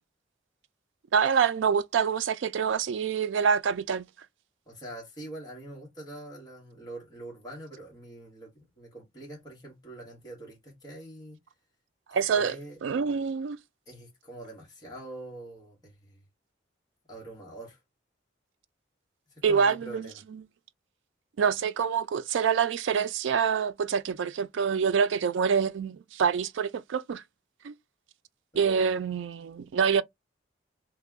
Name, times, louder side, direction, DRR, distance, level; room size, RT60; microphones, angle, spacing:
voice 1, 1.1-4.0 12.1-12.6 12.8-13.6 19.4-20.4 21.4-27.2 27.6-27.7 28.5-30.0, right 6 dB, 80° right, 0.4 m, -26 dB
voice 2, 4.7-11.4 12.3-12.8 13.9-16.2 17.1-17.8 19.3-20.2 28.5-28.9, right 2 dB, 20° left, 1.5 m, -44 dB
3.2 x 2.9 x 3.5 m
head